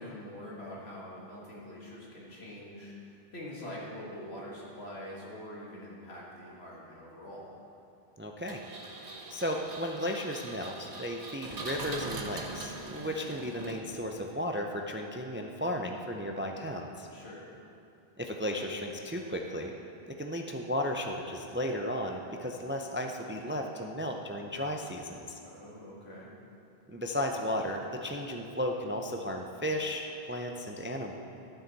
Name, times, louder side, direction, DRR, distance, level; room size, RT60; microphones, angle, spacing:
voice 1, 0.0-7.5 17.1-17.5 25.4-26.3, left 1 dB, 80° left, -5 dB, 2.2 m, -44 dB
voice 2, 8.2-8.6 8.9-17.1 18.2-19.7 20.2-25.4 26.9-31.1, equal, 20° right, 2 dB, 0.3 m, -34 dB
Engine, 8.5-14.2, right 3 dB, 45° right, 0.8 m, -42 dB
12.5 x 7.6 x 4.1 m, 2.8 s
omnidirectional pair, 1.1 m